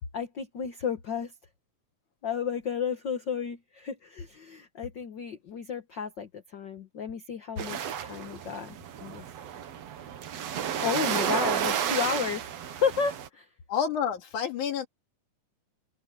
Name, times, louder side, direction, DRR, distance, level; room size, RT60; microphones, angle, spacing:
voice 1, 0.1-1.3 2.2-9.2 10.8-13.5, left 6 dB, 50° left, 1.4 m, -32 dB
sound 1, 7.6-13.3, right 9 dB, 60° right, 2.3 m, -32 dB
voice 2, 13.7-14.9, left 8 dB, 75° left, 3.7 m, -29 dB
open air
omnidirectional pair, 3.6 m